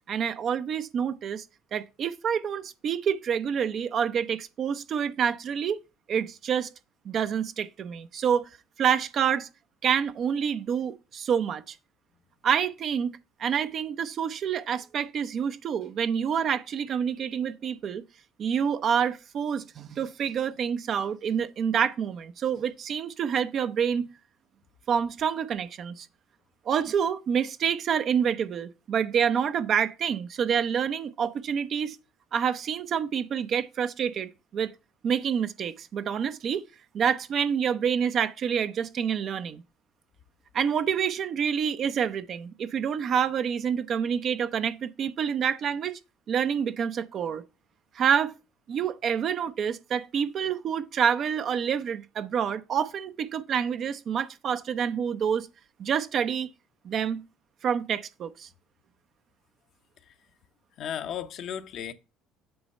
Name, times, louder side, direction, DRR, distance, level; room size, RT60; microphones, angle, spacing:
voice 1, 0.1-1.4 1.7-5.8 6.1-6.7 7.0-8.4 8.8-9.5 9.8-11.8 12.4-18.0 18.4-24.1 24.9-26.1 26.7-32.0 32.3-34.7 35.0-36.6 36.9-39.6 40.5-46.0 46.3-47.4 48.0-48.3 48.7-55.5 55.8-56.5 56.8-57.2 57.6-58.5, right 7 dB, 55° right, 0.5 m, -27 dB
voice 2, 60.8-61.9, left 9 dB, 60° left, 0.7 m, -34 dB
7.9 x 3.1 x 5.4 m
supercardioid pair, 75°, 0 cm